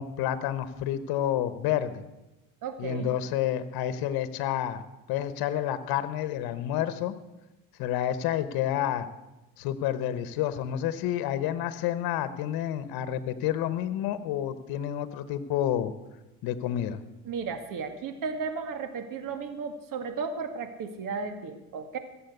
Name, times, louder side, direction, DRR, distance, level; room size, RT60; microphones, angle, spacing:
voice 1, 0.0-2.0 2.8-4.8 5.1-7.2 7.8-9.1 9.6-15.9 16.4-17.0, left 11 dB, 75° left, 13 dB, 1.1 m, -29 dB
voice 2, 2.6-3.1 17.3-22.0, right 5 dB, 60° right, 8 dB, 2.0 m, -34 dB
15.5 x 7.6 x 8.0 m, 1.0 s
cardioid pair, 95°, 36 cm